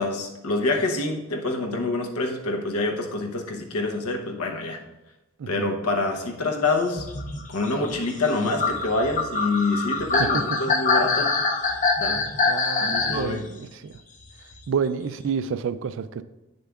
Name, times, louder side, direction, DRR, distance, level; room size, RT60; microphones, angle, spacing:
voice 1, 0.0-4.8 5.5-7.1 7.5-11.3 12.0-12.2 12.8-13.5, left 2 dB, 90° left, 3 dB, 1.0 m, -26 dB
sound 1, 6.8-13.3 14.5-14.6, left 4 dB, 35° left, 0.5 m, -24 dB
voice 2, 10.2-10.6 12.5-13.9 14.7-16.2, right 6 dB, 60° right, 13 dB, 0.3 m, -29 dB
8.8 x 6.7 x 2.4 m, 0.99 s
head